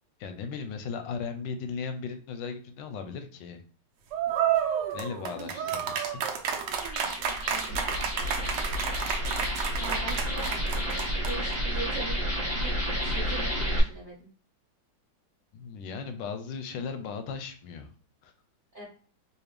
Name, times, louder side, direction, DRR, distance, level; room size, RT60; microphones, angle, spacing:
voice 1, 0.2-3.6 4.9-6.2 15.5-17.9 18.2-18.3, left 5 dB, 90° left, 7 dB, 1.3 m, -37 dB
sound 1, 4.1-11.5, right 8 dB, 75° right, 1.2 m, -30 dB
sound 2, 6.7-13.8, equal, 10° right, 0.7 m, -31 dB
voice 2, 7.5-8.0 9.8-10.6 11.3-12.2 12.5-14.3 18.7-18.8, right 2 dB, 30° right, -6 dB, 1.3 m, -40 dB
4.2 x 2.4 x 3.3 m, 0.41 s
omnidirectional pair, 1.9 m